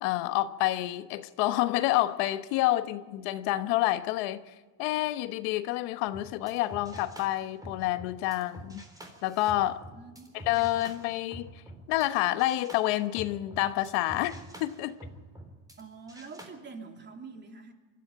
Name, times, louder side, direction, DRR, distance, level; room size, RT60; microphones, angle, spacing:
voice 1, 0.0-4.4 4.8-8.8 9.2-9.8 10.3-11.5 11.9-15.0, left 15 dB, 75° left, 11 dB, 1.1 m, -28 dB
sound 1, 6.1-12.1 12.4-15.8 16.1-16.5, right 1 dB, 10° right, 3.8 m, -47 dB
voice 2, 9.9-10.4 15.8-17.7, right 4 dB, 25° right, 3 dB, 2.9 m, -45 dB
23.5 x 13.0 x 9.1 m, 1.3 s
supercardioid pair, 125°, 42 cm